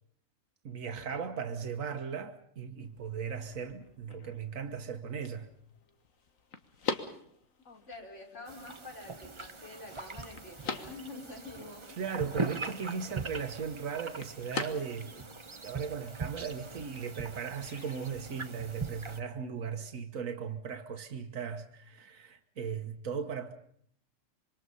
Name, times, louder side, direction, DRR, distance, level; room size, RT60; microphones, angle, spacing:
voice 1, 0.6-5.5 12.0-15.3 15.6-23.5, right 6 dB, 90° right, 1.6 m, -37 dB
sound 1, 2.8-18.3, left 4 dB, 90° left, 2.0 m, -45 dB
voice 2, 7.9-12.0 12.3-12.5, left 3 dB, 65° left, 5.0 m, -47 dB
sound 2, 8.5-19.2, right 4 dB, 25° right, 0.9 m, -41 dB
25.5 x 24.0 x 5.5 m
omnidirectional pair, 1.3 m